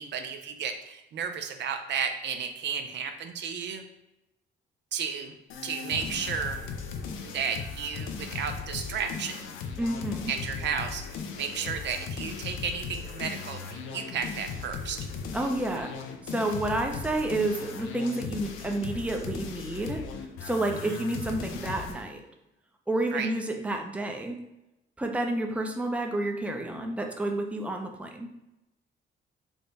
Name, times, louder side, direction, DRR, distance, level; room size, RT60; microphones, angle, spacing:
voice 1, 0.0-3.8 4.9-5.3 5.6-6.6 7.2-9.4 10.3-15.1 20.8-21.0 23.1-23.3, right 6 dB, 65° right, 7 dB, 0.4 m, -33 dB
sound 1, 5.5-22.0, left 5 dB, 85° left, 0.5 m, -38 dB
voice 2, 9.8-10.3 15.3-15.9 16.3-20.0 20.4-22.2 22.9-24.4 25.0-28.3, right 2 dB, 5° right, 3 dB, 0.5 m, -30 dB
3.6 x 2.1 x 3.9 m, 0.93 s
cardioid pair, 90°, 20 cm